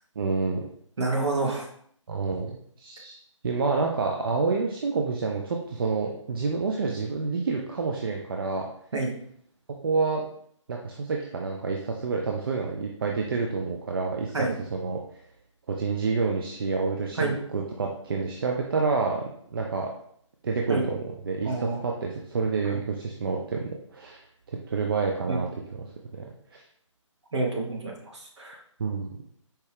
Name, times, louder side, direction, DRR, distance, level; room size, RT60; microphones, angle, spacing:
voice 1, 0.2-0.6 2.1-3.1 3.4-8.7 9.8-10.3 10.7-15.2 15.7-19.9 20.4-24.2 24.5-25.9 26.1-26.3 26.5-26.6 28.8-29.1, right 4 dB, 45° right, 0 dB, 0.4 m, -28 dB
voice 2, 1.0-1.7 8.9-9.1 14.3-14.5 17.2-17.4 20.7-20.8 21.4-21.8 22.7-22.8 25.3-25.4 27.3-28.6, right 3 dB, 60° right, 0 dB, 0.9 m, -28 dB
4.4 x 2.2 x 3.2 m, 0.66 s
figure-of-eight pair, 145°, 16 cm